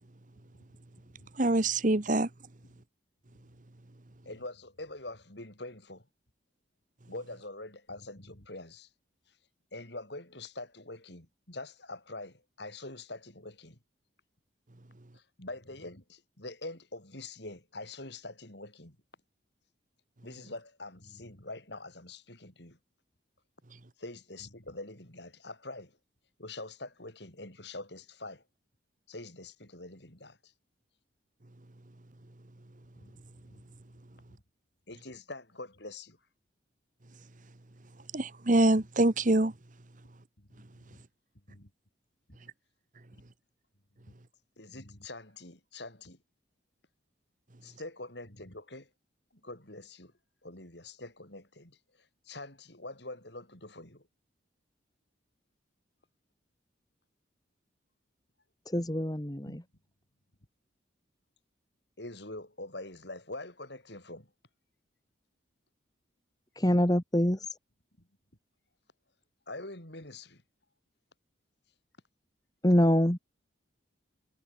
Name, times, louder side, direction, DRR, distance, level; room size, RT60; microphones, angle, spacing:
voice 1, 1.4-2.3 38.1-39.5, right 2 dB, 40° right, 1.1 m, -25 dB
voice 2, 4.2-6.0 7.1-8.9 9.7-13.8 15.1-19.0 20.2-22.8 24.0-26.0 26.4-28.4 29.1-30.5 33.0-33.1 33.5-33.6 34.9-36.2 40.4-40.6 40.9-41.0 41.5-41.7 44.6-46.2 47.6-48.9 49.4-50.1 50.4-51.8 52.2-54.1 59.4-59.6 62.0-64.3 69.5-70.4, left 2 dB, 60° left, 4.9 m, -44 dB
voice 3, 58.7-59.6 66.5-67.5 72.6-73.2, equal, 20° left, 1.8 m, -25 dB
head